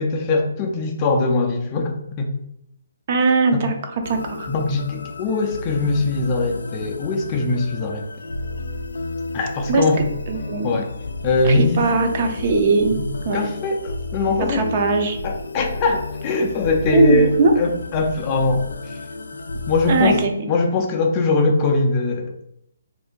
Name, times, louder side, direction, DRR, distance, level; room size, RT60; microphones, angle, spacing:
voice 1, 0.0-2.3 3.5-3.6 4.5-8.1 9.3-10.0 10.6-10.9 11.2-11.8 13.0-13.1 13.3-14.7 15.2-19.0 19.3-22.3, left 3 dB, 20° left, 2 dB, 0.4 m, -21 dB
voice 2, 3.1-4.5 9.7-9.8 10.3-10.8 11.4-13.0 13.3-13.5 14.5-15.2 16.9-17.5 19.8-20.5, right 3 dB, 35° right, 4 dB, 0.5 m, -19 dB
sound 1, 4.0-20.3, left 3 dB, 90° left, 0.4 m, -32 dB
2.6 x 2.6 x 3.6 m, 0.78 s
hypercardioid pair, 165°, 0 cm